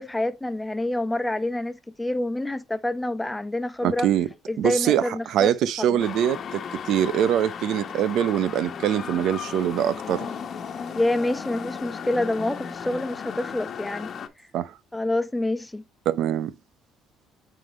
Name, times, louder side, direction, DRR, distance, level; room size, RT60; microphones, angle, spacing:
voice 1, 0.0-4.1 4.5-5.5 5.8-6.1 10.9-14.1 14.9-15.8, left 1 dB, 10° left, 1.0 m, -27 dB
voice 2, 3.8-4.3 4.6-10.3 14.5-14.7 16.1-16.5, right 10 dB, 70° right, 0.7 m, -23 dB
sound 1, 6.0-14.3, left 7 dB, 50° left, 1.2 m, -35 dB
9.1 x 3.9 x 3.0 m
supercardioid pair, 75°, 0 cm